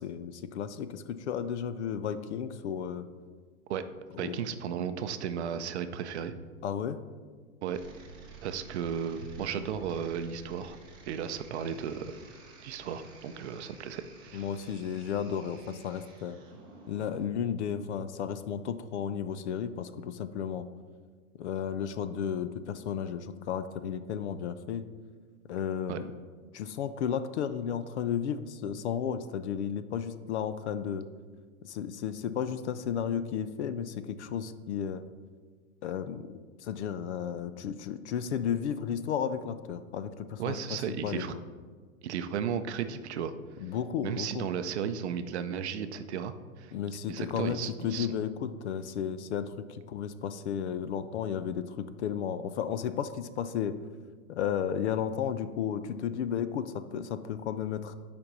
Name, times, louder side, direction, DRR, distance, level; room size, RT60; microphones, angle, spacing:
voice 1, 0.0-3.1 4.1-4.4 6.6-7.0 14.3-16.4 16.9-20.7 21.4-24.8 25.5-26.1 26.5-31.1 31.6-35.0 35.8-36.3 36.6-41.4 43.6-44.5 46.7-53.8 54.3-58.0, left 8 dB, 50° left, 12 dB, 0.5 m, -33 dB
voice 2, 4.2-6.3 7.6-7.8 8.4-10.8 11.1-12.2 12.6-14.4 25.9-26.0 40.4-41.3 42.0-43.3 44.0-46.7 47.1-48.1, right 8 dB, 50° right, 10 dB, 0.5 m, -34 dB
sound 1, 7.7-17.2, right 4 dB, 10° right, 0.7 m, -52 dB
7.1 x 5.2 x 5.3 m, 1.5 s
hypercardioid pair, 155°, 44 cm